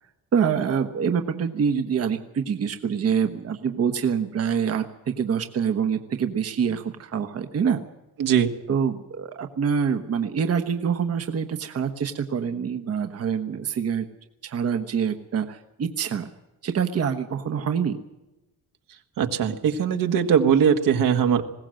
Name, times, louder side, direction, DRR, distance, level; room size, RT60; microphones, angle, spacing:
voice 1, 0.3-7.8 8.7-14.1 14.4-16.3 16.6-18.0, right 7 dB, 45° right, 6 dB, 1.1 m, -25 dB
voice 2, 8.2-8.5 19.2-21.5, right 7 dB, 75° right, 6 dB, 1.7 m, -20 dB
20.5 x 17.0 x 7.7 m, 0.98 s
wide cardioid pair, 170°, 33 cm